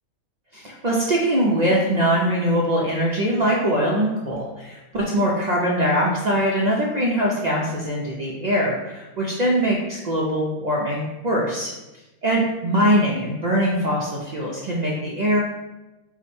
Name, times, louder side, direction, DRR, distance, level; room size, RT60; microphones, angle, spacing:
voice 1, 0.5-11.7 12.2-15.4, equal, 90° right, -4 dB, 0.3 m, -22 dB
4.8 x 2.2 x 4.2 m, 1.0 s
omnidirectional pair, 1.5 m